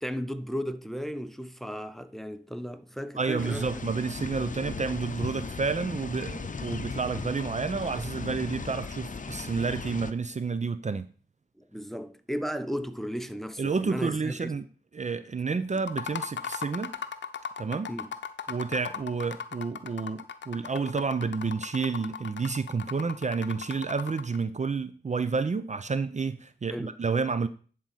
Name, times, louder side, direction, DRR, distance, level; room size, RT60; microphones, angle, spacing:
voice 1, 0.0-3.7 11.7-14.5 17.9-18.1 26.7-27.0, equal, ahead, 0.7 m, -35 dB
voice 2, 3.2-11.1 13.6-14.6 14.9-16.9 17.6-17.9 18.5-27.5, right 4 dB, 40° right, 0.5 m, -30 dB
sound 1, 3.4-10.1, left 4 dB, 45° left, 0.7 m, -37 dB
sound 2, 15.8-24.4, left 7 dB, 85° left, 0.6 m, -38 dB
10.5 x 3.8 x 5.6 m
cardioid pair, 45°, 18 cm